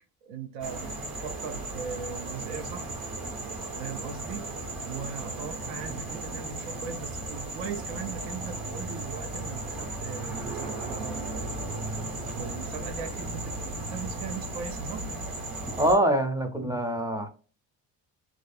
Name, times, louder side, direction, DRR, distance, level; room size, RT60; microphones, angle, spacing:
voice 1, 0.2-2.9 3.8-4.5 4.8-11.8 12.3-15.1, right 6 dB, 75° right, 0.5 m, -39 dB
sound 1, 0.6-15.9, right 2 dB, 50° right, 1.4 m, -36 dB
voice 2, 15.8-17.3, right 1 dB, 10° right, 0.4 m, -25 dB
2.5 x 2.3 x 2.4 m
cardioid pair, 80°, 45 cm